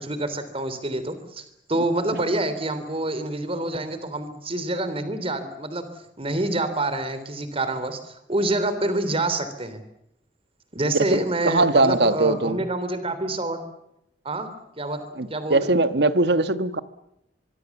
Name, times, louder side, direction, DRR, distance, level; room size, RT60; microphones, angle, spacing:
voice 1, 0.0-5.9 6.2-9.8 10.7-13.6 14.2-14.5 14.8-15.7, right 2 dB, 30° right, 11 dB, 3.3 m, -27 dB
voice 2, 10.8-12.6 15.2-16.8, right 2 dB, 65° right, 12 dB, 1.4 m, -21 dB
24.0 x 23.5 x 7.3 m, 0.81 s
head